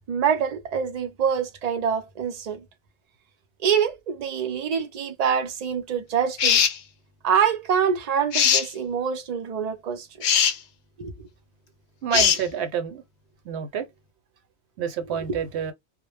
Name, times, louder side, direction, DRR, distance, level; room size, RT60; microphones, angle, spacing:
voice 1, 0.1-2.6 3.6-6.6 7.2-10.1 11.0-11.1 15.3-15.4, right 7 dB, 55° right, 0.5 m, -25 dB
sound 1, 6.4-6.8 8.3-8.7 10.2-10.6 12.1-12.4, left 8 dB, 75° left, 0.8 m, -20 dB
voice 2, 12.0-13.0 13.4-13.9 14.8-15.7, right 7 dB, 70° right, 0.9 m, -28 dB
2.0 x 2.0 x 3.2 m
omnidirectional pair, 1.2 m